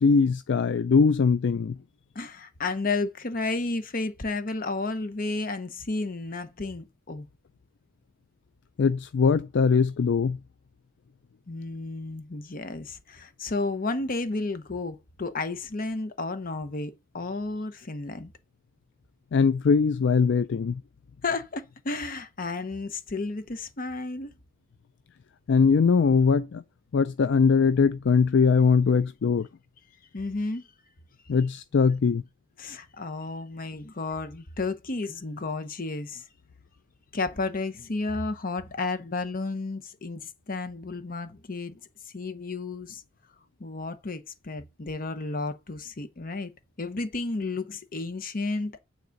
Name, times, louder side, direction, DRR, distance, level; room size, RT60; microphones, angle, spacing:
voice 1, 0.0-1.8 8.8-10.4 19.3-20.8 25.5-26.6 26.9-29.5 31.3-32.2, left 5 dB, 60° left, 0.4 m, -21 dB
voice 2, 2.1-7.3 11.5-18.3 21.2-24.3 30.1-30.7 32.6-36.3 37.1-41.8 42.1-43.0 43.6-46.5 46.8-48.8, left 3 dB, 45° left, 0.9 m, -32 dB
9.4 x 4.0 x 6.5 m
head